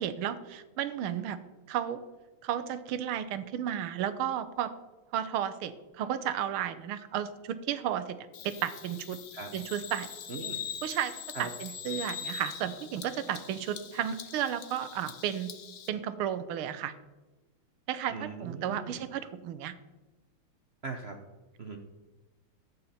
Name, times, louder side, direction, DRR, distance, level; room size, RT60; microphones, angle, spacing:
voice 1, 0.0-1.4 1.7-2.0 2.4-4.7 5.1-8.2 8.4-9.2 9.5-10.1 10.8-15.5 15.9-16.9 17.9-19.7, right 10 dB, 80° right, 12 dB, 1.6 m, -33 dB
Bird vocalization bird call bird song, 8.3-15.9, left 8 dB, 60° left, 0.9 m, -42 dB
voice 2, 10.3-10.6 11.3-11.5 18.1-19.0 20.8-21.2 21.6-21.8, right 4 dB, 65° right, 3 dB, 0.6 m, -39 dB
12.5 x 8.3 x 4.2 m, 1.2 s
omnidirectional pair, 2.3 m